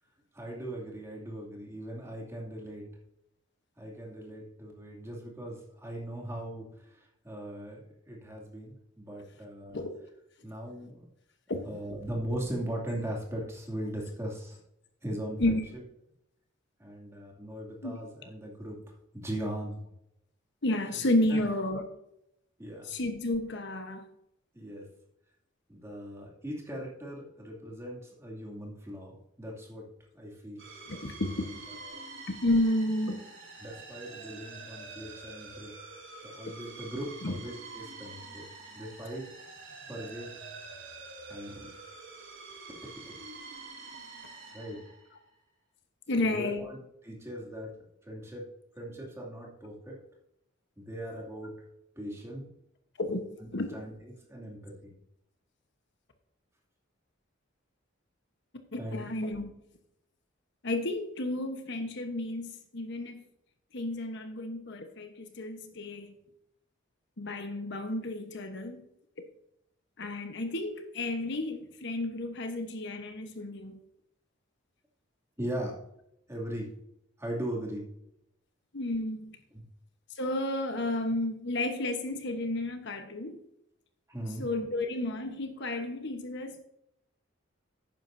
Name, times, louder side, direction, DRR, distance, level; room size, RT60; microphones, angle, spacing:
voice 1, 0.3-2.8 3.8-6.7 6.9-9.8 10.4-11.1 11.6-14.6 15.0-15.8 16.8-19.8 20.9-21.0 21.3-21.4 22.6-22.9 24.5-24.8 25.7-29.9 30.1-30.6 31.9-32.0 33.6-35.8 36.2-38.5 38.8-39.3 39.9-40.3 41.3-41.7 44.5-44.8 46.2-46.8 47.0-47.7 48.0-48.5 48.8-50.0 50.8-51.6 52.0-52.5 53.4-53.9 54.3-54.9 58.8-59.1 75.4-75.8 76.3-76.7 77.2-77.9 79.5-79.6 84.1-84.5, right 1 dB, 15° right, 2.5 m, -39 dB
voice 2, 20.6-21.8 22.8-24.1 30.9-31.5 32.3-33.2 37.2-37.3 46.1-46.7 53.0-53.2 53.5-53.7 58.7-59.5 60.6-63.2 63.7-66.1 67.2-68.9 70.0-73.8 78.7-79.4 80.1-83.4 84.4-86.6, left 1 dB, 60° left, 1.0 m, -31 dB
sound 1, 30.6-45.3, right 3 dB, 65° right, 3.0 m, -47 dB
12.0 x 9.4 x 2.6 m
head